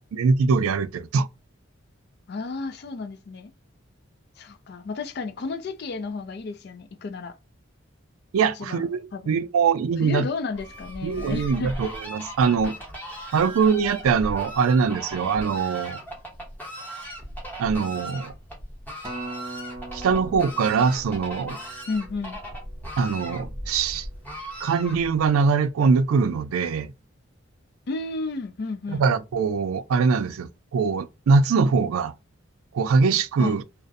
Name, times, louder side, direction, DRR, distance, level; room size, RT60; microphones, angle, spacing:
voice 1, 0.1-1.3 8.3-10.3 11.0-12.8 13.3-16.0 17.6-18.3 19.9-21.6 23.0-24.1 24.6-26.9 28.9-32.1 32.7-33.6, right 5 dB, 85° right, 0.3 m, -22 dB
voice 2, 2.3-3.5 4.4-7.3 8.6-8.8 9.1-9.2 10.0-11.7 21.9-22.4 27.9-29.0 33.4-33.5, left 3 dB, 50° left, 0.4 m, -32 dB
Fowl, 10.5-25.3, equal, 10° left, 0.8 m, -38 dB
Acoustic guitar, 19.0-23.5 24.1-24.2, right 2 dB, 20° right, 0.5 m, -41 dB
2.5 x 2.0 x 2.4 m
head